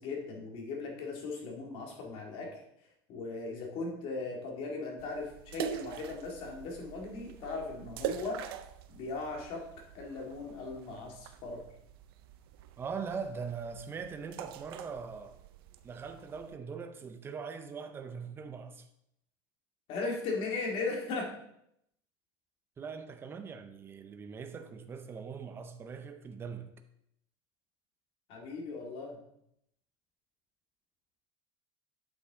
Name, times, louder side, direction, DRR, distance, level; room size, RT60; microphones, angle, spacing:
voice 1, 0.0-2.6 3.1-8.4 8.9-9.6 9.9-11.6 19.9-21.3 28.3-29.2, left 3 dB, 50° left, 2.1 m, -38 dB
sound 1, 5.0-16.6, right 10 dB, 85° right, 0.5 m, -44 dB
voice 2, 12.8-15.4 15.8-18.9 22.8-26.7, right 5 dB, 20° right, 0.6 m, -41 dB
7.9 x 5.6 x 3.7 m
supercardioid pair, 140°, 12 cm